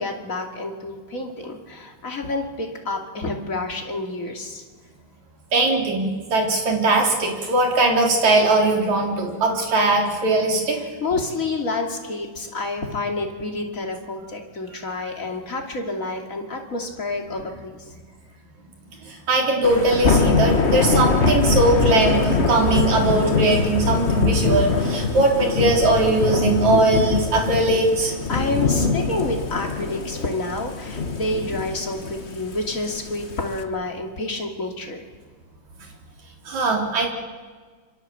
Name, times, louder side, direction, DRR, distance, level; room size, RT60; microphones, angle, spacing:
voice 1, 0.0-4.6 10.7-17.9 28.3-35.0, left 2 dB, 25° left, 2 dB, 2.7 m, -29 dB
voice 2, 5.5-10.8 19.0-28.1 36.5-37.1, right 2 dB, 60° right, 0 dB, 5.1 m, -20 dB
Thunder / Rain, 19.6-33.6, left 4 dB, 45° left, 0.8 m, -23 dB
26.5 x 25.0 x 7.8 m, 1.5 s
omnidirectional pair, 3.7 m